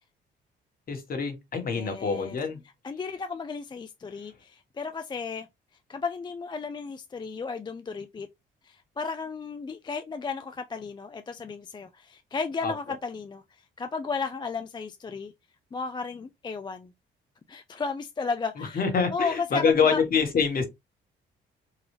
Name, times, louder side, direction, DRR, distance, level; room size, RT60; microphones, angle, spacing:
voice 1, 0.9-2.6 12.6-12.7 18.6-20.7, left 5 dB, 45° left, 1.3 m, -25 dB
voice 2, 1.7-2.4 2.8-5.5 5.9-8.3 8.6-15.3 15.7-16.9 17.5-20.0, left 5 dB, 25° left, 0.3 m, -34 dB
3.9 x 2.3 x 3.2 m
cardioid pair, 90°, 20 cm